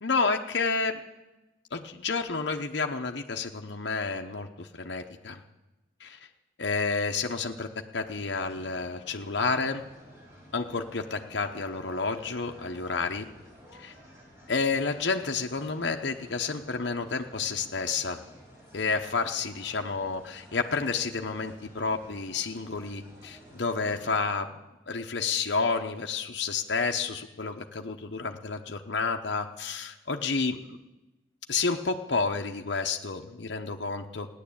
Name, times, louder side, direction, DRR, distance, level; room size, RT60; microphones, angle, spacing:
voice 1, 0.0-1.0 1.7-5.4 6.0-6.2 6.6-7.7 7.9-9.8 10.5-13.3 13.8-13.9 14.5-18.2 18.7-24.5 24.9-30.6 31.5-34.3, left 4 dB, 65° left, 3 dB, 0.9 m, -30 dB
sound 1, 8.0-24.1, equal, 15° right, 3.6 m, -53 dB
16.0 x 10.0 x 8.6 m, 1.0 s
head